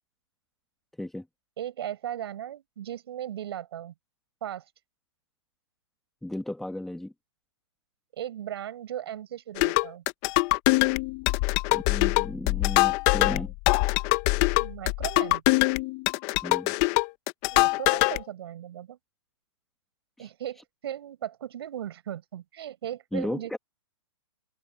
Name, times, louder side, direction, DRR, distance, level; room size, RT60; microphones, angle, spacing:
voice 1, 1.6-3.9 4.4-4.6 8.2-10.0 14.6-15.4 17.5-19.0 20.2-23.5, right 11 dB, 55° right, 7.3 m, -37 dB
voice 2, 6.2-7.1 11.7-13.5 16.4-16.7 20.2-20.3 23.1-23.6, left 1 dB, ahead, 1.3 m, -34 dB
sound 1, 9.6-18.2, left 23 dB, 25° left, 0.5 m, -23 dB
open air
hypercardioid pair, 155°, 16 cm